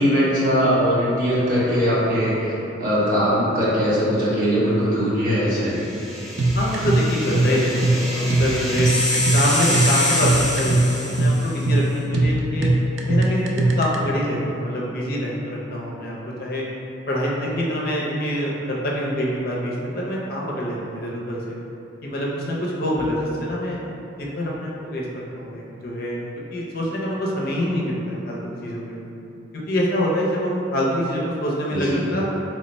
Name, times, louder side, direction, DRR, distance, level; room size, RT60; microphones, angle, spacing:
voice 1, 0.0-2.5 2.8-5.7 31.7-32.0, equal, 50° right, -10 dB, 1.0 m, -20 dB
sound 1, 5.7-11.7, left 1 dB, ahead, 0.4 m, -26 dB
sound 2, 6.4-14.0, right 2 dB, 80° right, 0.4 m, -20 dB
voice 2, 6.5-8.9 9.3-12.7 13.1-16.6 17.1-21.6 22.0-23.8 24.2-26.2 26.5-29.0 29.7-32.4, equal, 50° left, -4 dB, 0.5 m, -25 dB
3.1 x 2.1 x 4.0 m, 2.8 s
head